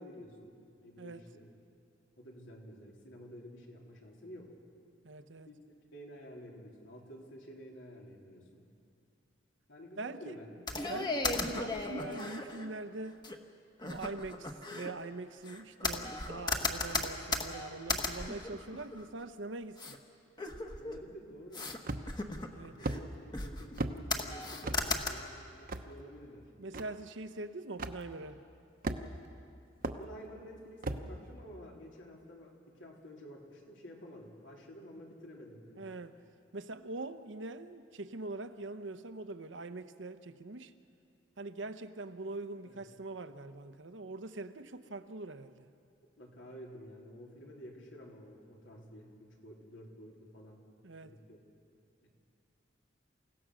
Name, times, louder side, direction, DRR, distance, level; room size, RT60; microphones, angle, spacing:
voice 1, 0.0-1.5 2.2-4.5 5.4-5.6 5.9-8.7 9.7-10.8 20.8-21.7 22.5-26.5 29.8-35.9 42.6-42.8 46.2-50.6 51.0-51.4 52.0-52.1, equal, 80° left, -1 dB, 3.6 m, -51 dB
voice 2, 5.0-5.5 10.0-10.4 10.9-13.2 13.8-20.0 22.5-22.8 26.6-28.4 35.8-36.2 36.5-40.7 41.4-45.7 50.8-51.2, right 2 dB, 75° right, 10 dB, 0.9 m, -43 dB
sound 1, 10.7-12.7 13.2-13.3 13.8-14.9 15.4-19.2 19.8-20.0 20.4-21.0 21.5-21.8 22.1-23.0 23.3-23.8 24.1-25.1, left 3 dB, 25° left, 1.3 m, -36 dB
sound 2, 21.8-22.3 22.8-23.0 23.8-24.0 24.6-24.8 25.7-25.9 26.7-26.8 27.8-28.0 28.8-29.3 29.8-30.0 30.8-31.1, right 2 dB, 50° right, 0.9 m, -35 dB
28.5 x 16.5 x 6.3 m, 2.4 s
head